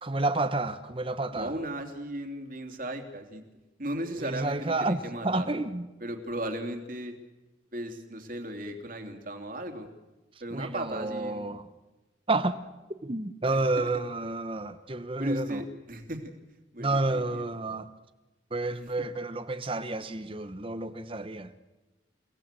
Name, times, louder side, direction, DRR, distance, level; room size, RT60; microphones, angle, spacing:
voice 1, 0.0-1.5 4.2-5.9 10.5-11.7 12.3-12.6 13.0-15.6 16.8-17.9 18.5-21.5, right 2 dB, 30° right, 1.0 m, -30 dB
voice 2, 1.3-3.4 3.8-5.5 6.0-7.2 7.7-9.9 10.4-11.4 13.4-13.9 15.2-17.4, right 1 dB, 45° right, 3.1 m, -36 dB
30.0 x 18.5 x 7.7 m
head